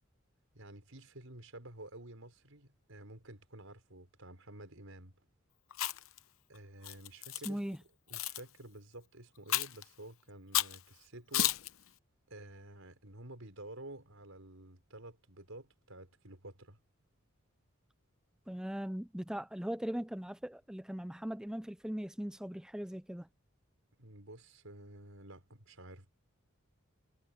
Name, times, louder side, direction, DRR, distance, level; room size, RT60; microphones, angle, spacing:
voice 1, 0.5-5.1 6.5-7.6 8.1-11.6 12.3-16.8 24.0-26.1, right 1 dB, 80° right, 5.7 m, -51 dB
Chewing mastication, 5.7-6.2 6.8-7.5 8.1-8.4 9.5-9.8 10.5-10.8 11.3-11.7, left 12 dB, 80° left, 0.8 m, -32 dB
voice 2, 7.4-7.8 18.5-23.3, equal, 5° right, 0.5 m, -39 dB
head